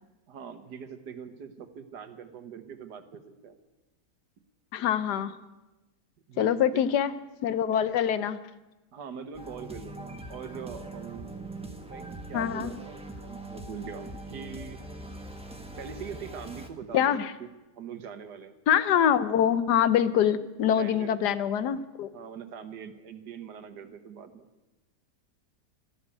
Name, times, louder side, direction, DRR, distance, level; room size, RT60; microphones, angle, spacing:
voice 1, 0.3-3.6 6.3-6.9 8.9-11.3 11.9-14.8 15.8-18.6 20.6-21.2 22.1-24.5, right 7 dB, 90° right, 9 dB, 1.7 m, -42 dB
voice 2, 4.7-5.3 6.4-7.1 7.4-8.4 12.3-12.7 16.9-17.3 18.7-22.1, left 9 dB, 80° left, 13 dB, 1.4 m, -24 dB
sound 1, 9.3-16.7, right 1 dB, 5° right, 1.1 m, -42 dB
13.0 x 12.5 x 8.3 m, 1.0 s
omnidirectional pair, 1.7 m